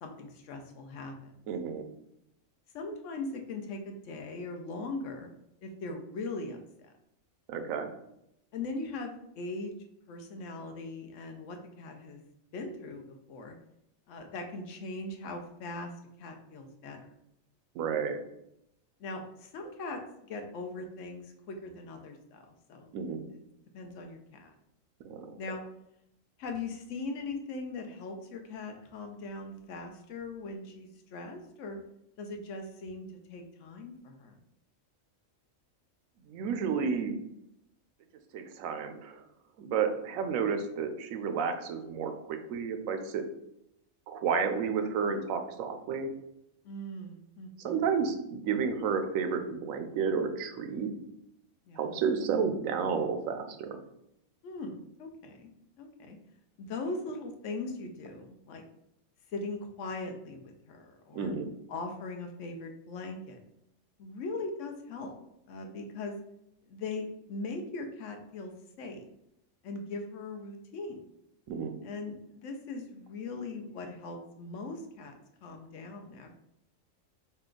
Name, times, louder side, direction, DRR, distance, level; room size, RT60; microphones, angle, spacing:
voice 1, 0.0-1.4 2.7-5.3 5.6-6.9 8.5-9.7 10.1-12.2 12.5-13.6 14.1-15.9 16.2-17.1 19.0-20.0 20.3-22.9 23.7-24.5 25.4-25.6 26.4-31.8 32.2-34.4 40.1-40.6 46.6-47.8 51.6-52.0 54.4-55.5 55.8-56.2 56.6-58.6 59.3-61.3 61.7-63.4 64.0-65.1 65.5-66.2 66.7-69.1 69.6-71.0 71.8-76.3, left 3 dB, 70° left, 4 dB, 0.9 m, -40 dB
voice 2, 1.5-1.8 7.5-7.9 17.8-18.2 22.9-23.2 25.0-25.3 36.3-37.1 38.3-39.2 39.6-43.2 44.1-46.1 47.6-50.9 51.8-53.8 61.1-61.5 71.5-71.7, right 6 dB, 80° right, 7 dB, 1.0 m, -31 dB
4.1 x 2.3 x 3.7 m, 0.80 s
omnidirectional pair, 1.4 m